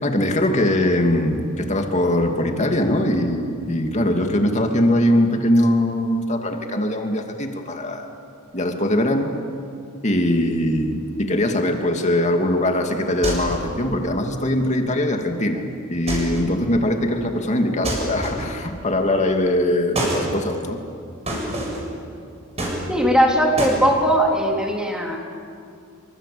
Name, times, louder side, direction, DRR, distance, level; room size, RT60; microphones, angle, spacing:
voice 1, 0.0-8.1 8.5-9.3 10.0-15.6 15.9-20.8, left 1 dB, 35° left, 4 dB, 2.5 m, -21 dB
sound 1, 13.2-13.8 16.1-16.6 17.8-18.7 19.9-20.3 21.3-21.9 22.6-23.2 23.6-23.8, right 1 dB, 30° right, 7.4 m, -27 dB
voice 2, 22.9-25.2, equal, 5° right, 0 dB, 3.6 m, -19 dB
27.0 x 25.5 x 8.6 m, 2.4 s
head